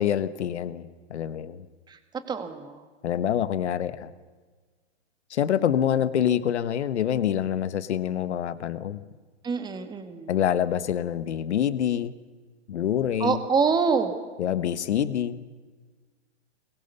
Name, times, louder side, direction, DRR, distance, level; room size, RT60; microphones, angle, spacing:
voice 1, 0.0-1.7 3.0-4.1 5.3-9.0 10.3-12.1 12.7-13.4 14.4-15.4, left 9 dB, 75° left, 14 dB, 1.5 m, -26 dB
voice 2, 2.3-2.8 9.4-10.3 13.2-14.1, right 5 dB, 10° right, 8 dB, 1.9 m, -25 dB
24.0 x 21.5 x 7.0 m, 1.4 s
hypercardioid pair, 140°, 35 cm